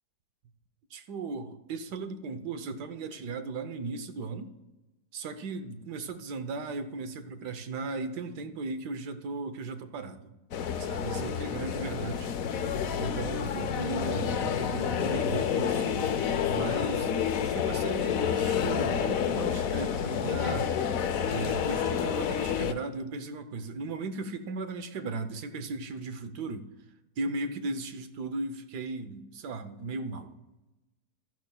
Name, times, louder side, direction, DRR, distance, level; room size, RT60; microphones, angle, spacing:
voice 1, 0.9-4.5 5.1-10.4 10.8-12.3 12.9-16.0 16.5-17.1 17.4-20.7 21.2-26.7 27.2-30.4, right 3 dB, 80° right, 9 dB, 1.4 m, -37 dB
sound 1, 10.5-22.7, left 8 dB, 65° left, 1.0 m, -29 dB
15.5 x 12.5 x 2.3 m, 1.0 s
omnidirectional pair, 1.7 m